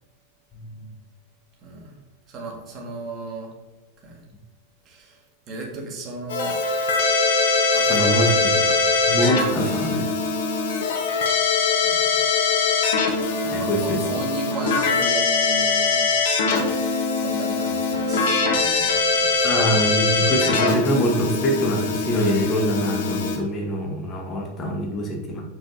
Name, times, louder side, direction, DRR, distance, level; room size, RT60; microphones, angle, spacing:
voice 1, 0.5-0.9 7.9-8.5 9.1-10.1 13.4-14.2 19.4-25.4, equal, 25° left, 0 dB, 1.3 m, -24 dB
voice 2, 1.6-2.0 2.3-3.5 4.0-4.2 4.9-5.2 5.5-6.6 7.7-8.5 11.8-12.2 13.5-16.1 17.2-19.5, right 3 dB, 30° right, -1 dB, 2.0 m, -35 dB
Keyboard (musical), 6.3-23.4, left 4 dB, 55° left, 1.1 m, -22 dB
7.3 x 6.4 x 2.8 m, 1.1 s
figure-of-eight pair, 90°, 0 cm